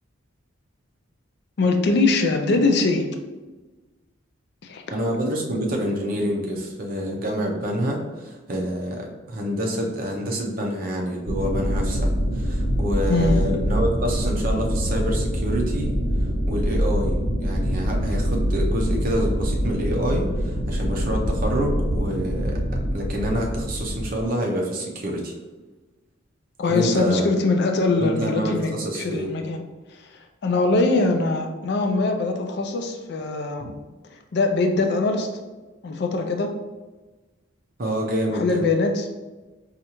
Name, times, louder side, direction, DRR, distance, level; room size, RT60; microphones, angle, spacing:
voice 1, 1.6-3.1 4.6-4.8 13.1-13.6 26.6-29.6 30.4-33.7 34.1-35.3 35.8-36.5 38.3-39.1, left 3 dB, 55° left, 4 dB, 0.4 m, -22 dB
voice 2, 4.9-15.9 16.5-22.6 22.9-25.3 26.7-27.3 28.0-29.3 33.6-33.7 37.8-38.6, equal, 45° right, 0 dB, 0.6 m, -27 dB
sound 1, 11.3-24.2, equal, 85° left, 0.7 m, -24 dB
4.2 x 2.4 x 2.9 m, 1.2 s
head